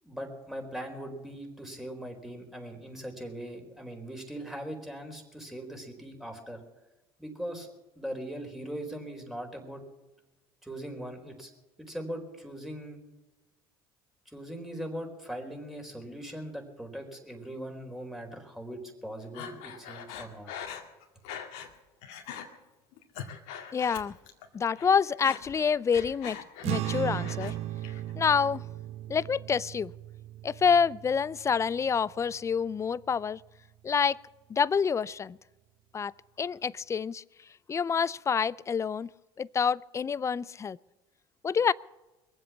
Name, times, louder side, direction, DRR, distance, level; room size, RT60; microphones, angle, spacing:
voice 1, 0.0-6.6 7.2-7.7 8.0-9.8 10.6-11.5 11.8-13.0 14.3-20.5, right 1 dB, 5° right, 2 dB, 4.2 m, -40 dB
Breathing, 19.3-21.7 22.0-22.5 22.9-24.5 24.7-27.5 27.8-28.5, left 8 dB, 70° left, 2.1 m, -42 dB
voice 2, 23.7-24.1 24.5-26.4 26.7-27.6 28.2-28.6 29.1-29.9 30.4-33.4 33.8-34.2 34.5-35.4 35.9-37.2 37.7-39.1 39.4-40.8 41.4-41.7, left 6 dB, 25° left, 23 dB, 0.4 m, -27 dB
sound 1, 26.6-33.3, right 14 dB, 60° right, 0.7 m, -37 dB
22.5 x 7.8 x 7.2 m, 1.1 s
hypercardioid pair, 75°, 12 cm